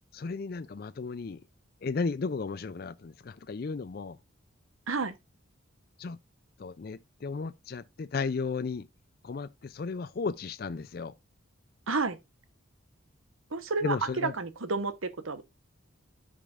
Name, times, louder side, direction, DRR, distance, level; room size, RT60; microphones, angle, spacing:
voice 1, 0.1-1.4 1.8-4.2 6.0-6.2 6.6-8.9 9.2-11.1 13.8-14.3, left 4 dB, 45° left, 0.4 m, -34 dB
voice 2, 11.9-12.2 13.5-14.0 14.2-15.4, right 4 dB, 85° right, 1.0 m, -30 dB
13.0 x 5.1 x 2.5 m
head